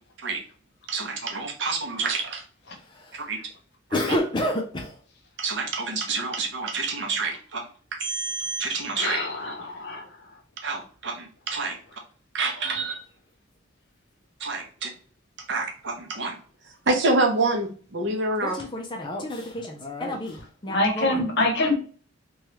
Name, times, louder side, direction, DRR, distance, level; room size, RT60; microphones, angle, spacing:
voice 1, 0.9-2.4 3.1-3.4 4.1-4.2 5.4-7.6 7.9-9.2 10.6-11.8 12.3-13.0 14.4-14.9 15.5-16.4 16.9-18.6, right 3 dB, 60° right, 3 dB, 0.7 m, -27 dB
voice 2, 2.8-3.2 3.9-5.0 18.4-21.5, left 1 dB, 20° left, 1 dB, 0.4 m, -30 dB
voice 3, 8.9-10.3 20.7-21.7, left 2 dB, 55° left, 2 dB, 0.8 m, -25 dB
3.0 x 2.3 x 2.9 m, 0.41 s
head